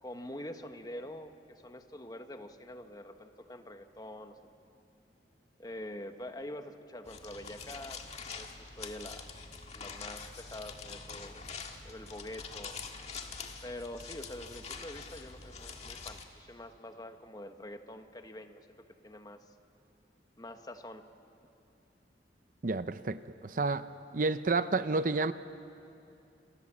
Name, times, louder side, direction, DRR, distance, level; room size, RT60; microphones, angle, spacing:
voice 1, 0.0-4.4 5.6-8.0 8.4-9.3 9.7-11.4 11.8-12.8 13.6-18.8 19.0-19.4 20.4-21.0, left 1 dB, 20° left, 7 dB, 1.2 m, -45 dB
sound 1, 7.0-16.2, left 5 dB, 40° left, 1.8 m, -45 dB
voice 2, 22.6-23.2 23.4-23.8 24.1-25.3, right 3 dB, 50° right, 12 dB, 0.6 m, -29 dB
28.0 x 28.0 x 7.3 m, 2.7 s
head